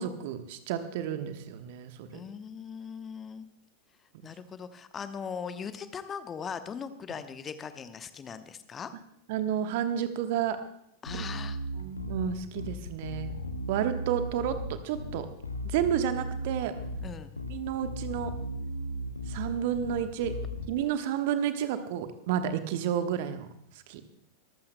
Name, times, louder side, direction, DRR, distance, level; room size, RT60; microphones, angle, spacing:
voice 1, 0.0-2.2 9.3-10.6 11.8-13.4 13.7-15.3 15.6-16.7 17.5-18.3 19.3-20.4 20.7-23.5 23.9-24.0, right 9 dB, 50° right, 8 dB, 1.2 m, -31 dB
voice 2, 2.1-3.5 4.2-8.9 11.0-11.6 17.0-17.3, left 6 dB, 20° left, 11 dB, 0.9 m, -39 dB
Bass guitar, 11.1-20.7, equal, 80° left, 1.0 m, -36 dB
24.0 x 14.5 x 2.2 m, 0.73 s
figure-of-eight pair, 90°, 0 cm